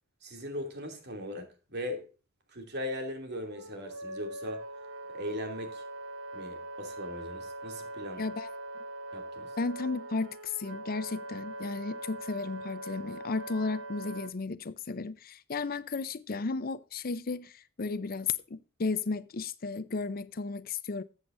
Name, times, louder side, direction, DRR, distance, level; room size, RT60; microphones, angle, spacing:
voice 1, 0.2-2.1 2.5-4.6 5.1-5.9 6.3-8.2 9.1-9.5, left 1 dB, 55° right, 2.7 m, -39 dB
Wind instrument woodwind instrument, 3.5-14.3, right 2 dB, 70° right, 1.1 m, -42 dB
voice 2, 8.2-8.5 9.6-21.0, left 4 dB, 45° left, 0.6 m, -34 dB
13.5 x 8.1 x 2.6 m
head